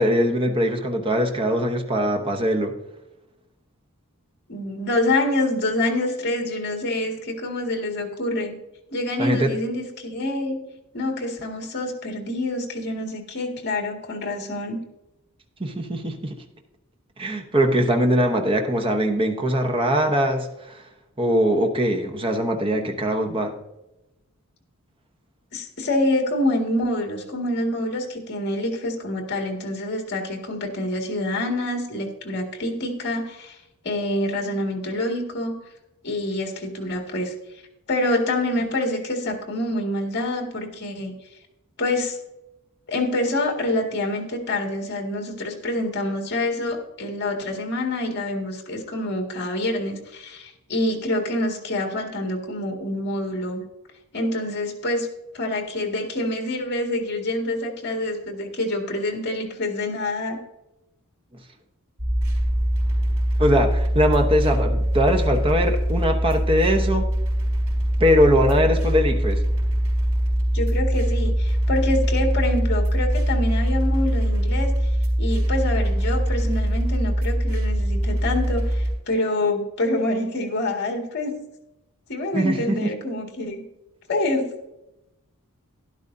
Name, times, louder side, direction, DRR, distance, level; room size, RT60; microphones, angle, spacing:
voice 1, 0.0-2.7 9.2-9.5 15.6-16.4 17.2-20.8 21.2-23.5 63.4-67.1 68.0-69.4 82.3-82.9, equal, 25° right, 5 dB, 0.9 m, -21 dB
voice 2, 4.5-8.5 8.9-10.6 10.9-14.8 25.5-33.6 33.8-35.6 36.0-37.3 37.9-41.1 41.8-42.2 42.9-53.6 54.1-55.1 55.3-60.4 70.5-74.7 75.2-81.4 82.1-83.6 84.1-84.5, left 1 dB, 50° left, 2 dB, 2.0 m, -26 dB
sound 1, 62.0-78.9, equal, 90° right, 3.8 m, -22 dB
12.0 x 11.5 x 2.7 m, 0.93 s
head